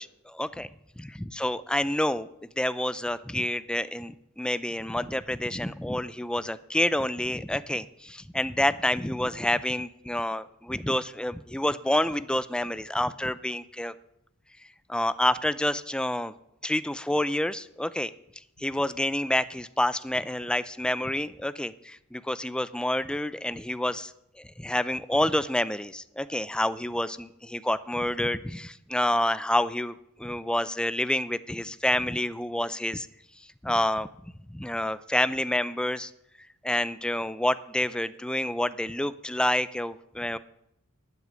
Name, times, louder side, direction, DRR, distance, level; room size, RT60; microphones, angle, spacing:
voice 1, 0.0-0.7 1.0-2.3 2.6-13.9 14.9-16.3 16.6-18.1 18.6-24.1 24.6-33.1 33.6-34.1 34.5-36.1 36.6-40.4, left 1 dB, 5° left, 15 dB, 0.4 m, -28 dB
12.5 x 8.2 x 9.4 m, 0.79 s
head